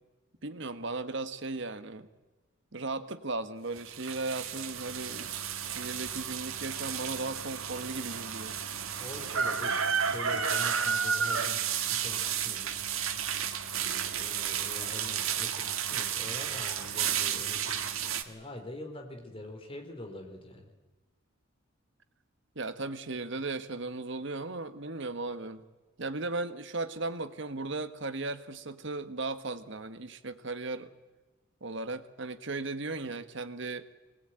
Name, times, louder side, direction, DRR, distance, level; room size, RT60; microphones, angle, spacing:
voice 1, 0.4-2.1 2.7-5.3 5.6-8.5 22.5-25.6 26.0-30.9 31.6-33.9, right 3 dB, 60° right, 11 dB, 1.3 m, -36 dB
sound 1, 3.8-18.2, right 7 dB, 80° right, 1.7 m, -32 dB
voice 2, 9.0-11.6 11.9-12.7 13.7-17.8 18.3-20.7, left 1 dB, 25° left, 3 dB, 3.4 m, -44 dB
25.0 x 20.0 x 8.9 m, 1.2 s
head